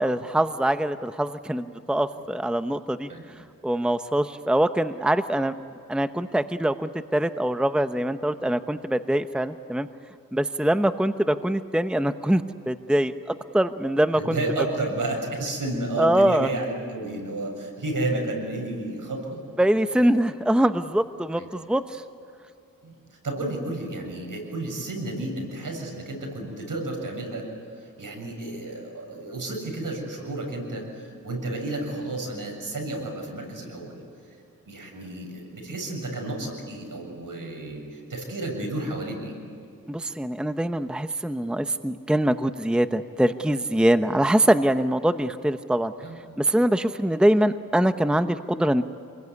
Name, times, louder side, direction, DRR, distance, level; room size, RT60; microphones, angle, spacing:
voice 1, 0.0-5.5 5.9-9.9 10.3-14.4 14.8-14.9 16.0-16.5 19.6-22.0 39.9-45.9 46.4-48.8, right 1 dB, 5° right, 9 dB, 0.9 m, -23 dB
voice 2, 14.2-19.4 21.4-21.5 22.8-22.9 23.2-27.4 28.0-33.9 34.7-39.3 46.0-46.2, right 2 dB, 70° right, 2 dB, 7.4 m, -31 dB
28.0 x 22.0 x 9.6 m, 2.5 s
cardioid pair, 60°, 34 cm